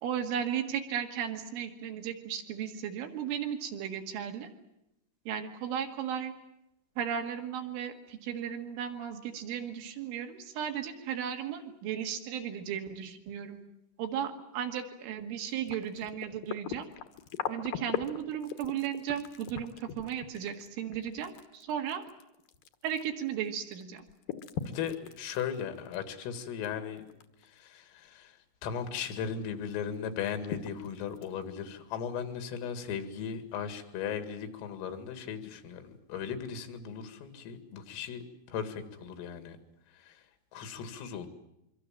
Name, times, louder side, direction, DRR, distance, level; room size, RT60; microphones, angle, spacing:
voice 1, 0.0-4.5 5.3-6.3 7.0-13.6 14.0-16.9 17.5-22.0 22.8-24.0, right 9 dB, 75° right, 4 dB, 4.4 m, -35 dB
sound 1, 15.5-23.5 23.7-26.7 27.0-27.5 27.8-27.9 29.2-29.3 29.7-29.8 30.2-31.4 32.2-32.3, left 10 dB, 70° left, 2.2 m, -40 dB
voice 2, 24.7-27.0 27.4-39.6 40.0-40.2 40.5-41.3, left 7 dB, 85° left, 9 dB, 4.7 m, -37 dB
26.0 x 24.0 x 7.5 m, 0.85 s
omnidirectional pair, 5.7 m